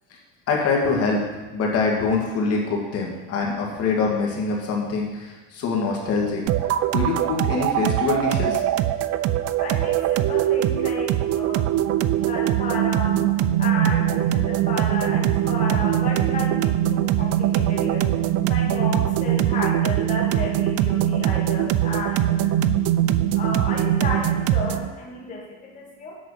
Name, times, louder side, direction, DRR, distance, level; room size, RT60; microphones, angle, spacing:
voice 1, 0.5-1.2 1.5-8.6, left 4 dB, 50° left, -1 dB, 2.1 m, -24 dB
sound 1, 6.5-24.9, right 11 dB, 55° right, 0.5 m, -22 dB
voice 2, 9.6-11.7 12.2-13.2 13.6-22.6 23.3-26.2, left 2 dB, 25° left, -3 dB, 1.9 m, -32 dB
8.2 x 5.9 x 6.5 m, 1.2 s
cardioid pair, 135°, 30 cm